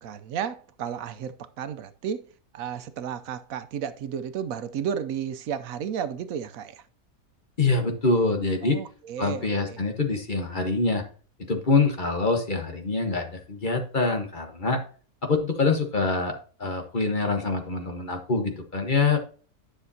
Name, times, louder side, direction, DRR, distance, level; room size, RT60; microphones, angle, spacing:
voice 1, 0.0-2.3 2.5-6.8 8.6-9.8, right 8 dB, 80° right, 1.0 m, -33 dB
voice 2, 7.6-8.8 9.2-11.0 11.5-14.8 15.2-19.2, left 3 dB, 35° left, 1.3 m, -25 dB
10.0 x 6.4 x 2.7 m
omnidirectional pair, 1.5 m